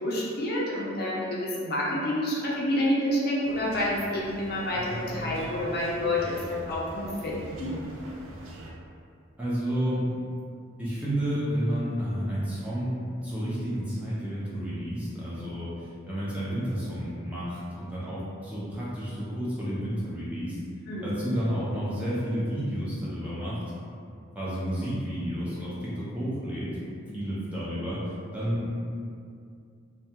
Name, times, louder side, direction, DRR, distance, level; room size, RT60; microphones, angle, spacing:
voice 1, 0.0-7.8 20.9-21.2 27.1-27.2, left 1 dB, 50° left, -5 dB, 0.4 m, -28 dB
sound 1, 3.4-8.7, right 1 dB, 85° right, 0.4 m, -41 dB
voice 2, 9.4-10.1 10.8-13.0 13.2-20.6 21.0-23.6 24.3-26.7 27.1-28.8, equal, 5° right, -10 dB, 0.5 m, -31 dB
2.2 x 2.2 x 2.8 m, 2.3 s
head